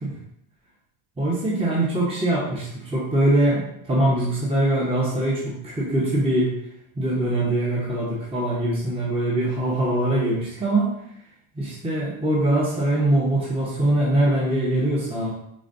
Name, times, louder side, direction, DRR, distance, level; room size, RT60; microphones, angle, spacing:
voice 1, 1.2-6.5 7.0-10.9 11.6-15.3, right 1 dB, 10° right, -6 dB, 0.8 m, -22 dB
4.8 x 2.3 x 2.6 m, 0.75 s
cardioid pair, 90°, 50 cm